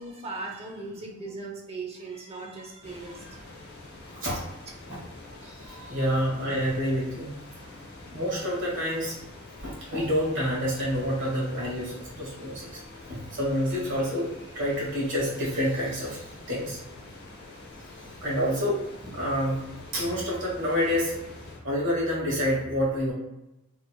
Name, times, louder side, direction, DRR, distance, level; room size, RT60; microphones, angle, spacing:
voice 1, 0.0-3.6, right 3 dB, 30° right, 0 dB, 0.6 m, -38 dB
sound 1, 2.8-21.6, left 2 dB, 45° left, 0.7 m, -46 dB
voice 2, 5.4-7.4 8.1-9.2 9.6-14.3 14.5-16.8 18.2-21.2 21.6-23.1, equal, 55° right, -4 dB, 1.1 m, -28 dB
2.8 x 2.8 x 2.2 m, 0.93 s
head